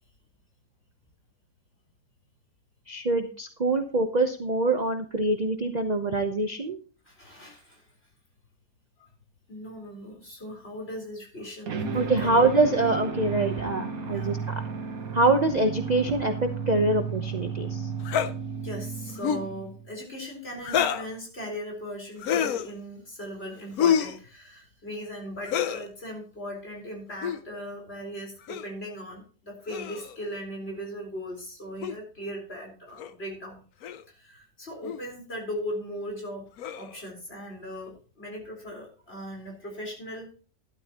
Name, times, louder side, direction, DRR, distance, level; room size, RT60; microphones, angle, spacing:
voice 1, 2.9-6.8 11.9-14.4 15.1-16.3 16.7-17.9, right 2 dB, 35° right, 6 dB, 0.8 m, -24 dB
voice 2, 7.0-7.9 9.5-12.5 14.1-14.3 18.6-33.6 34.1-36.5 36.7-40.3, equal, 40° left, 0 dB, 4.4 m, -38 dB
sound 1, 11.7-19.9, right 6 dB, 70° right, 1.7 m, -33 dB
sound 2, 18.1-18.3 19.2-19.5 20.6-21.1 22.2-22.7 23.8-24.2 25.4-25.8 27.1-27.4 28.5-28.7 29.7-30.2 31.8-32.0 33.0-33.1 33.8-34.0 34.8-35.0 36.6-37.0, left 8 dB, 75° left, 1.2 m, -27 dB
12.5 x 12.0 x 3.0 m, 0.38 s
omnidirectional pair, 1.6 m